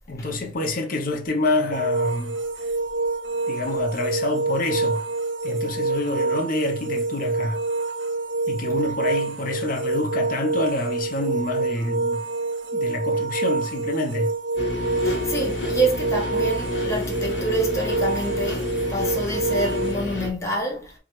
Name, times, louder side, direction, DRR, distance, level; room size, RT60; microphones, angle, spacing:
voice 1, 0.1-2.4 3.5-5.1 5.4-7.6 8.5-12.2 12.7-14.3, left 2 dB, 45° left, 0.7 m, -27 dB
sound 1, 1.7-19.9, right 3 dB, 65° right, 0.6 m, -27 dB
sound 2, 14.6-20.3, left 2 dB, 70° left, 1.1 m, -29 dB
voice 2, 15.0-20.9, right 1 dB, 15° left, 0.9 m, -27 dB
3.1 x 2.4 x 4.3 m
head